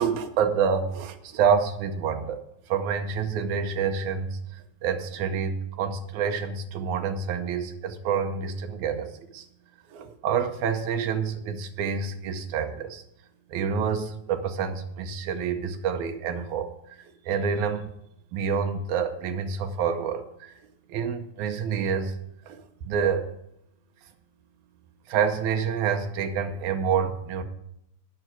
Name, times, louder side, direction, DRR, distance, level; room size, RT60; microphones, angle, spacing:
voice 1, 0.0-9.5 9.9-13.0 13.5-17.9 18.3-20.6 20.9-22.2 22.4-23.3 25.1-27.4, right 6 dB, 85° right, 6 dB, 2.3 m, -28 dB
9.3 x 6.0 x 7.9 m, 0.78 s
omnidirectional pair, 3.3 m